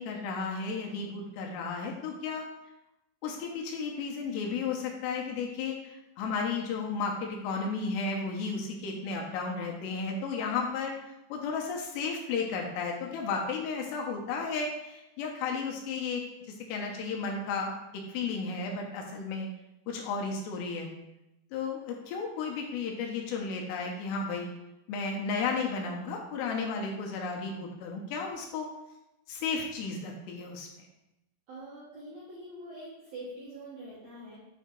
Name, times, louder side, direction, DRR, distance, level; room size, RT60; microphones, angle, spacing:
voice 1, 0.0-2.5 3.2-10.9 11.3-17.7 18.1-19.5 19.9-20.9 21.5-24.5 24.9-28.7 29.3-30.9, left 4 dB, 80° left, 0 dB, 2.8 m, -33 dB
voice 2, 31.5-34.4, right 1 dB, 70° right, -8 dB, 1.8 m, -44 dB
9.1 x 3.5 x 4.4 m, 0.93 s
omnidirectional pair, 5.2 m